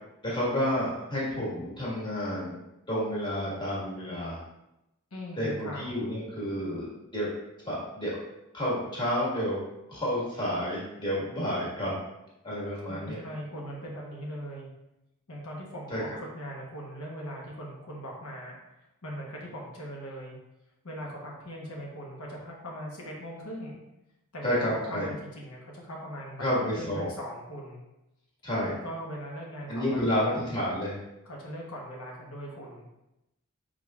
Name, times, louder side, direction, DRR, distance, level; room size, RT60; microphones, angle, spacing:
voice 1, 0.2-2.5 2.9-4.4 5.4-7.3 7.6-8.2 8.5-9.6 9.9-11.9 12.4-13.2 15.9-16.0 24.4-25.1 26.4-27.1 28.4-28.7 29.7-31.0, equal, 20° left, -7 dB, 1.4 m, -30 dB
voice 2, 5.1-5.8 12.8-14.7 15.3-18.6 19.0-20.4 20.8-23.8 24.3-27.8 28.8-30.0 31.2-32.8, equal, 85° left, -2 dB, 0.9 m, -40 dB
4.9 x 3.7 x 2.3 m, 0.91 s
head